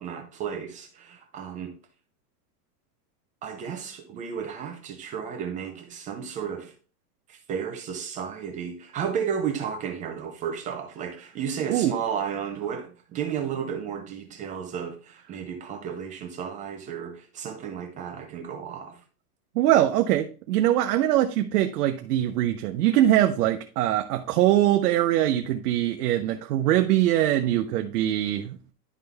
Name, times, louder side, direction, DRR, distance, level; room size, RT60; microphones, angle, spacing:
voice 1, 0.0-1.8 3.4-6.7 7.3-19.0, right 7 dB, 15° right, 0.4 m, -33 dB
voice 2, 19.6-28.6, right 13 dB, 70° right, 0.8 m, -22 dB
11.0 x 3.7 x 3.4 m
supercardioid pair, 150°, 47 cm